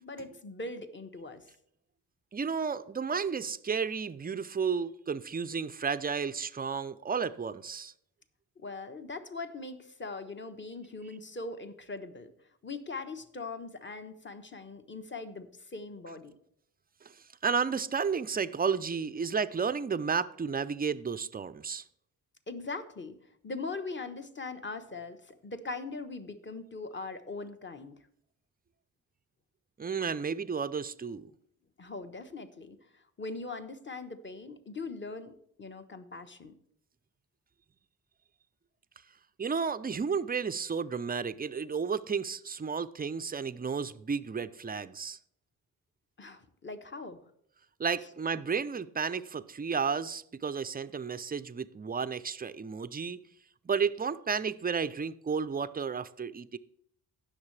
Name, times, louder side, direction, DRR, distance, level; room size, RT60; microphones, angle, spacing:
voice 1, 0.0-1.5 8.6-12.3 12.6-16.3 22.5-23.1 23.4-28.0 31.8-36.5 46.2-47.2, left 3 dB, 30° left, 1.2 m, -41 dB
voice 2, 2.3-7.9 17.0-21.8 29.8-31.3 39.4-45.2 47.8-53.2 53.6-56.6, right 6 dB, 20° right, 0.5 m, -32 dB
17.5 x 6.5 x 3.3 m
cardioid pair, 60°, 41 cm